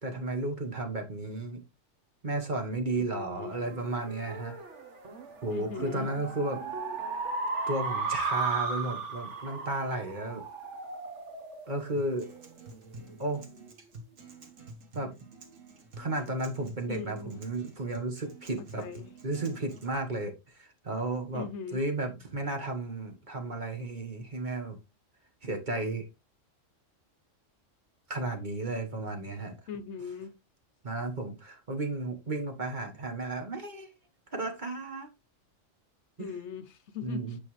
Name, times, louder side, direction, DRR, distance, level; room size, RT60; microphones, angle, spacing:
voice 1, 0.0-1.6 2.2-4.6 5.4-6.6 7.7-10.4 11.7-12.3 13.2-13.4 14.9-15.1 16.0-18.8 19.2-24.8 25.4-26.1 28.1-29.6 30.8-33.9 34.3-35.1 36.2-36.3 37.0-37.4, right 2 dB, 40° right, 1.5 m, -33 dB
voice 2, 3.0-3.9 5.5-6.1 16.9-17.4 18.6-19.1 21.3-21.8 29.7-30.4 36.2-37.4, left 7 dB, 65° left, 1.0 m, -40 dB
sound 1, 3.6-12.5, right 4 dB, 65° right, 1.6 m, -36 dB
Acoustic guitar, 12.0-20.0, right 2 dB, 85° right, 1.8 m, -49 dB
8.6 x 5.4 x 3.2 m
omnidirectional pair, 1.3 m